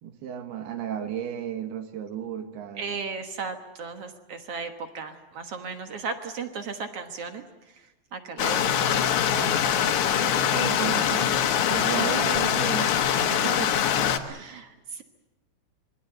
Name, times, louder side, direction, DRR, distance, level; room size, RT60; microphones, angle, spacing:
voice 1, 0.0-3.0 10.1-13.7, right 9 dB, 85° right, 8 dB, 3.7 m, -34 dB
voice 2, 2.8-7.4 8.1-10.0 13.6-13.7 14.3-15.0, right 5 dB, 60° right, 7 dB, 1.7 m, -36 dB
Stream, 8.4-14.2, left 9 dB, 60° left, 2.2 m, -23 dB
26.0 x 21.0 x 7.9 m, 1.0 s
omnidirectional pair, 4.5 m